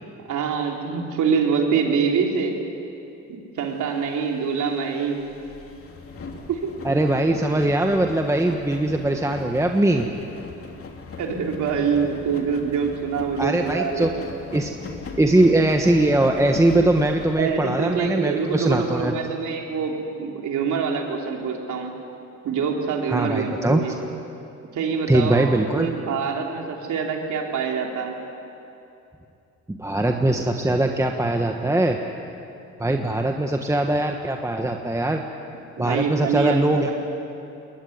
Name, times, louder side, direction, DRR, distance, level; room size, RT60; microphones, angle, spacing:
voice 1, 0.2-2.6 3.3-5.3 6.5-6.7 11.2-14.2 17.4-21.9 22.4-24.0 24.7-28.2 35.8-36.9, right 6 dB, 75° right, 1 dB, 3.6 m, -25 dB
sound 1, 3.6-19.0, left 4 dB, 50° left, 3.0 m, -40 dB
voice 2, 6.8-10.1 13.4-14.1 14.5-14.7 15.2-19.2 23.1-23.8 25.1-25.9 29.7-32.0 32.8-35.2 35.8-36.9, right 1 dB, 10° right, 3 dB, 1.4 m, -21 dB
22.0 x 19.5 x 9.5 m, 2.7 s
cardioid pair, 90°, 30 cm